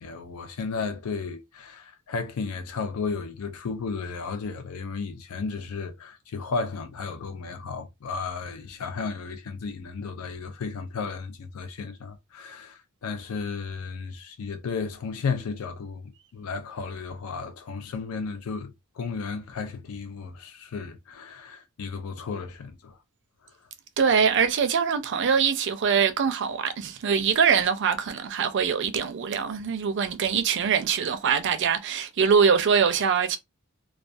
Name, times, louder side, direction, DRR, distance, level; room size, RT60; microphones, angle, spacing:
voice 1, 0.0-23.0, left 4 dB, 70° left, 0.4 m, -34 dB
voice 2, 24.0-33.4, right 6 dB, 55° right, 0.4 m, -23 dB
2.3 x 2.2 x 2.5 m
head